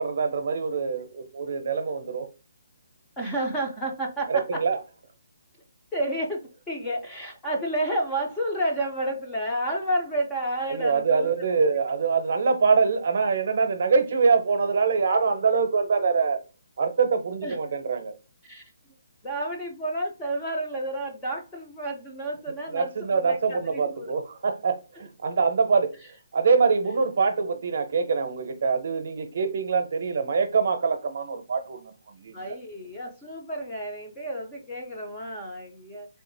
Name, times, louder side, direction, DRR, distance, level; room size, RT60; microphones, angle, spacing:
voice 1, 0.0-2.3 4.3-4.8 10.7-16.4 16.8-18.2 22.7-26.0 26.3-31.9 32.2-32.6, right 5 dB, 45° right, 0.7 m, -24 dB
voice 2, 3.2-4.6 5.9-6.4 6.7-11.5 17.4-17.6 18.4-18.6 19.2-24.1 32.3-36.1, right 1 dB, 5° left, 0.5 m, -30 dB
3.6 x 2.4 x 2.6 m
hypercardioid pair, 175°, 0 cm